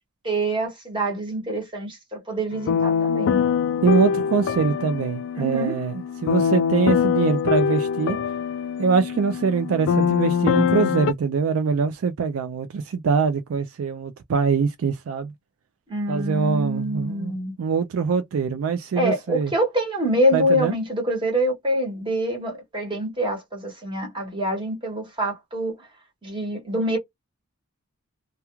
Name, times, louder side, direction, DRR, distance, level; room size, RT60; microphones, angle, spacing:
voice 1, 0.2-3.4 5.3-5.8 15.9-17.5 19.0-25.8 26.2-27.0, equal, 25° right, 1.1 m, -25 dB
sound 1, 2.5-11.1, left 7 dB, 60° left, 0.3 m, -23 dB
voice 2, 3.8-5.9 6.2-8.2 8.8-15.3 16.1-17.3 17.6-19.5 20.3-20.8, right 5 dB, 70° right, 0.3 m, -23 dB
2.3 x 2.2 x 2.9 m
head